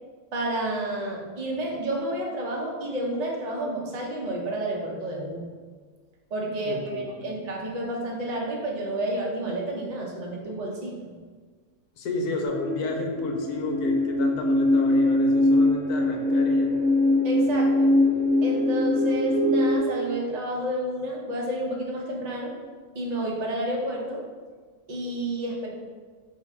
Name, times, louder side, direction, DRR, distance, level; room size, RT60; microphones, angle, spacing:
voice 1, 0.3-5.5 6.3-11.1 17.2-17.9 18.4-22.5 22.9-24.2 24.9-25.7, right 1 dB, 70° right, -2 dB, 0.3 m, -30 dB
voice 2, 6.6-7.4 12.0-16.7, left 3 dB, 80° left, 2 dB, 1.1 m, -32 dB
sound 1, 12.4-19.8, left 1 dB, 40° right, 1.1 m, -22 dB
3.5 x 2.8 x 4.2 m, 1.5 s
omnidirectional pair, 1.6 m